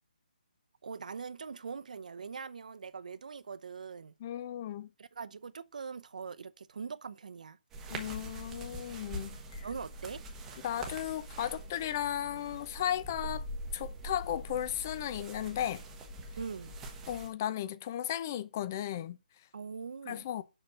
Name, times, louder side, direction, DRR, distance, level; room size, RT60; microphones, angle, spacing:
voice 1, 0.8-4.1 5.0-7.6 9.6-10.2 16.4-16.8 19.5-20.3, right 5 dB, 50° right, 0.7 m, -42 dB
voice 2, 4.2-4.9 7.9-9.7 10.6-13.4 13.7-15.8 17.1-19.2 20.1-20.4, left 11 dB, 15° left, 0.4 m, -35 dB
sound 1, 7.7-17.3, right 1 dB, 5° right, 0.9 m, -43 dB
7.7 x 5.8 x 7.8 m
hypercardioid pair, 180°, 5 cm